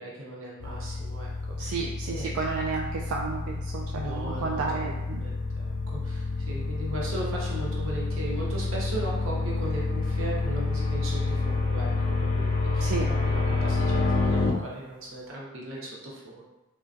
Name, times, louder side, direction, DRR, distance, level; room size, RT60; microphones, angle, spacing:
voice 1, 0.0-1.8 2.1-2.3 3.9-16.4, right 1 dB, 65° right, -4 dB, 0.8 m, -38 dB
sound 1, 0.6-14.5, left 3 dB, 35° left, 0.4 m, -28 dB
voice 2, 1.6-5.2 12.8-13.1, right 4 dB, 85° right, -1 dB, 0.3 m, -32 dB
3.7 x 2.2 x 2.5 m, 1.1 s
head